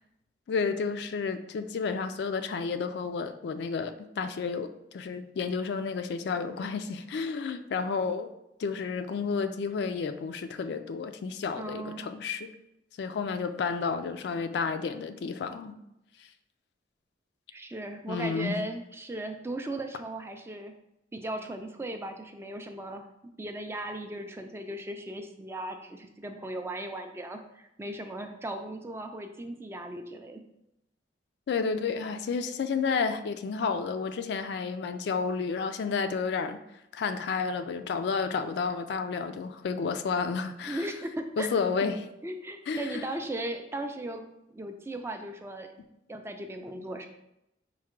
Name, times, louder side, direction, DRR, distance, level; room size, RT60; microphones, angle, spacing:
voice 1, 0.5-8.3 8.6-12.5 13.0-15.8 18.1-18.6 31.5-36.6 36.9-40.8 41.4-42.0 42.7-43.1, left 5 dB, 65° left, 9 dB, 0.3 m, -31 dB
voice 2, 11.6-12.1 17.5-20.7 21.1-23.1 23.4-30.4 40.7-41.5 41.8-41.9 42.2-44.2 44.5-45.7 46.1-47.1, right 1 dB, 15° right, 5 dB, 0.3 m, -37 dB
4.6 x 2.2 x 4.4 m, 0.84 s
head